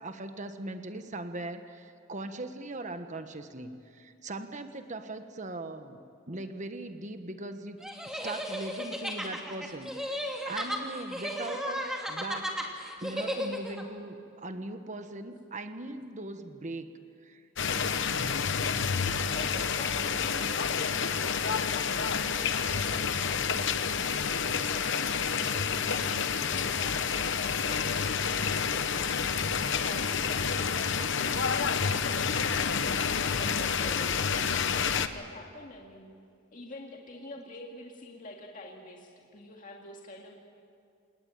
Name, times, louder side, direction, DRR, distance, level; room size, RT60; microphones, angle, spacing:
voice 1, 0.0-7.8 8.0-12.5 13.0-16.9 17.2-17.5, right 2 dB, 35° right, 8 dB, 1.3 m, -40 dB
sound 1, 7.8-13.8, equal, ahead, 2.4 m, -35 dB
sound 2, 17.6-35.1, left 6 dB, 60° left, 1.0 m, -29 dB
voice 2, 19.3-32.9 33.2-36.1 36.5-40.4, left 1 dB, 40° left, 0 dB, 2.1 m, -47 dB
28.0 x 19.0 x 9.0 m, 2.4 s
head